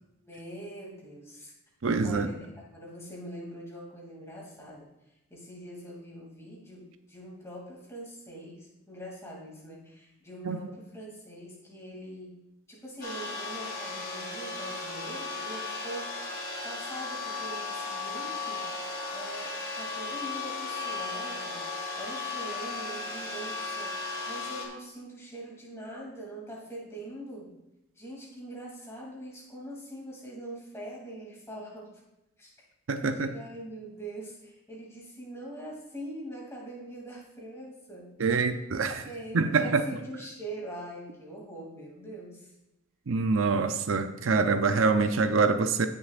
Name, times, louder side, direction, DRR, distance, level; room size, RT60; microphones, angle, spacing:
voice 1, 0.2-1.5 2.0-4.9 5.3-12.4 12.7-16.1 16.6-18.7 19.1-21.6 21.9-27.5 28.0-31.9 32.4-32.5 33.0-38.4 39.0-42.5, right 1 dB, 15° left, -3 dB, 2.6 m, -43 dB
voice 2, 1.8-2.3 10.5-10.6 32.9-33.3 38.2-39.1 39.3-39.8 43.1-45.9, right 4 dB, 65° right, 8 dB, 0.6 m, -25 dB
sound 1, 13.0-24.7, left 4 dB, 45° left, 2.0 m, -36 dB
16.5 x 6.7 x 2.5 m, 0.91 s
head